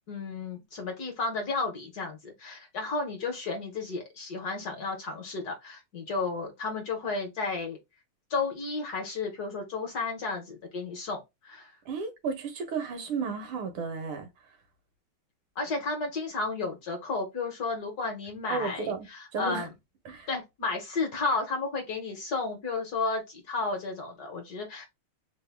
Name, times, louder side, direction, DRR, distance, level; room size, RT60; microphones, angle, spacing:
voice 1, 0.1-7.8 8.3-11.7 15.6-19.7 20.3-24.9, left 3 dB, 60° left, 1.1 m, -33 dB
voice 2, 11.9-14.3 18.5-19.7 20.1-20.3, right 5 dB, 90° right, 1.8 m, -33 dB
3.9 x 2.1 x 3.3 m
omnidirectional pair, 2.3 m